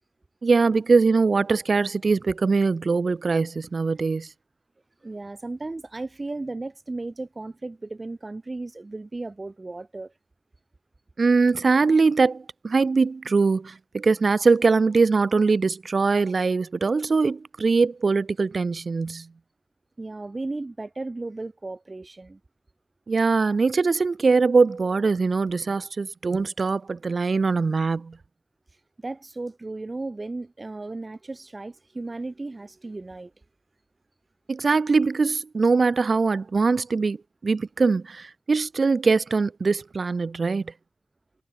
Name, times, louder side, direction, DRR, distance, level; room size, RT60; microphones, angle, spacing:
voice 1, 0.4-4.3 11.2-19.3 23.1-28.2 34.5-37.2 37.4-40.7, right 4 dB, 70° right, 0.4 m, -22 dB
voice 2, 5.0-10.1 20.0-22.4 29.0-33.3, right 2 dB, 45° right, 2.3 m, -35 dB
cardioid pair, 55°, 0 cm